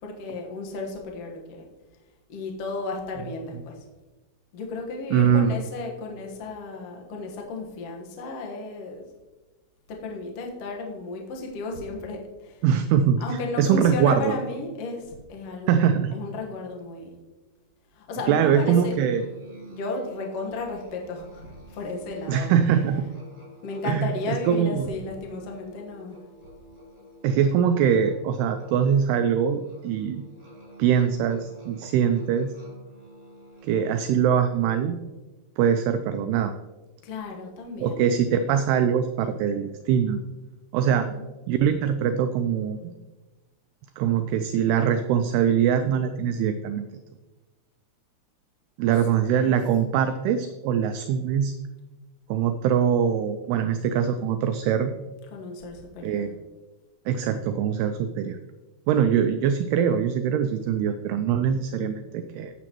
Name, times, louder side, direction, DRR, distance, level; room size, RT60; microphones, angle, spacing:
voice 1, 0.0-1.6 2.3-3.8 4.5-9.0 9.9-12.6 13.2-15.8 16.1-17.1 17.9-18.9 19.7-22.5 23.6-26.2 37.0-38.0 40.9-41.2 49.4-49.6 55.3-56.3, left 3 dB, 65° left, 0 dB, 1.5 m, -34 dB
voice 2, 5.1-5.5 12.6-13.2 13.6-14.3 15.7-16.1 18.3-19.2 22.3-23.1 23.9-24.1 24.5-24.9 27.2-30.2 30.8-32.5 33.6-35.0 35.6-36.5 37.8-40.2 40.7-41.1 41.5-42.9 44.0-46.9 48.8-51.5 52.3-54.9 56.0-56.3 57.1-58.4 58.9-62.5, right 8 dB, 85° right, 8 dB, 2.4 m, -23 dB
Musical instrument, 18.8-34.4, equal, 10° right, 2.3 m, -49 dB
16.5 x 6.9 x 3.0 m, 1.2 s
omnidirectional pair, 4.9 m